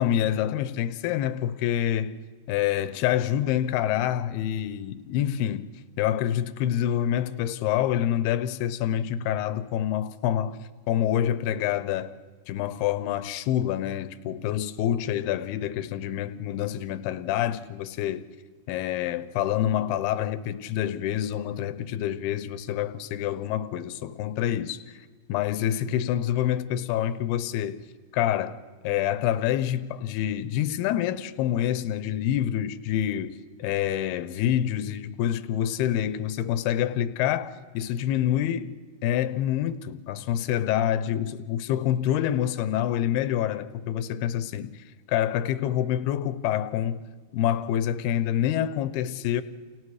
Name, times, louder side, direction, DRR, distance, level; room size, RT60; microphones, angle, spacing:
voice 1, 0.0-2.1 2.5-5.7 6.0-10.6 10.9-12.2 12.5-18.3 18.7-25.0 25.3-27.8 28.1-28.6 28.8-38.7 39.0-47.0 47.3-49.4, left 11 dB, 85° left, 2.8 m, -27 dB
30.0 x 28.5 x 4.9 m
omnidirectional pair, 4.5 m